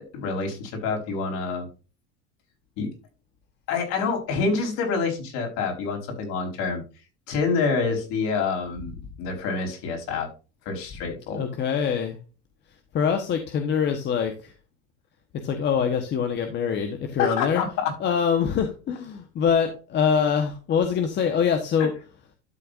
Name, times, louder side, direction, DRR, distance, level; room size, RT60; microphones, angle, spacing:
voice 1, 0.1-1.7 2.8-2.9 3.7-6.8 7.3-10.3 10.6-11.4 17.2-18.1, left 4 dB, 55° left, 2 dB, 4.6 m, -27 dB
voice 2, 11.3-12.2 12.9-14.5 15.4-17.6 18.0-21.9, left 7 dB, 30° left, 5 dB, 1.2 m, -24 dB
12.0 x 6.6 x 2.6 m, 0.32 s
supercardioid pair, 140°, 34 cm